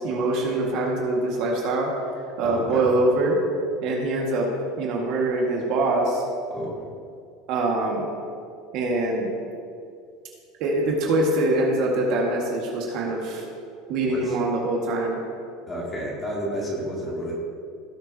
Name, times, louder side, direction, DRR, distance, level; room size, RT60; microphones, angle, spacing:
voice 1, 0.0-1.9 2.4-3.4 3.8-4.5 4.8-6.2 7.5-8.1 8.7-9.3 10.6-13.4 13.9-15.2, right 2 dB, 50° right, -1 dB, 1.9 m, -24 dB
voice 2, 2.4-2.9 6.5-6.8 14.1-14.3 15.7-17.3, equal, 15° left, -5 dB, 2.6 m, -31 dB
17.5 x 7.0 x 2.9 m, 2.3 s
cardioid pair, 160°, 0 cm